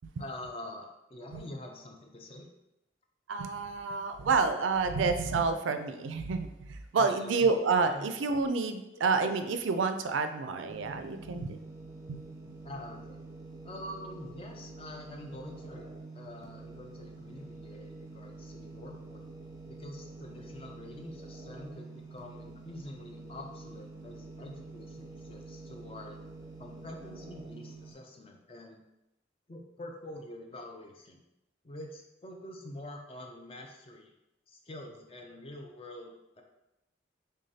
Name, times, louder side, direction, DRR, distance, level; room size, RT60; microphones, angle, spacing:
voice 1, 0.2-2.5 4.9-5.1 6.9-7.3 7.9-8.1 12.6-13.2 13.6-19.3 19.7-26.2 26.6-28.8 29.5-31.2 31.6-34.1 34.5-36.4, left 1 dB, 30° left, 2 dB, 0.4 m, -46 dB
voice 2, 3.3-11.6 12.1-12.2, right 4 dB, 85° right, 8 dB, 0.4 m, -29 dB
sound 1, 10.7-27.9, right 3 dB, 20° right, 0.5 m, -47 dB
6.2 x 2.2 x 2.7 m, 0.92 s
head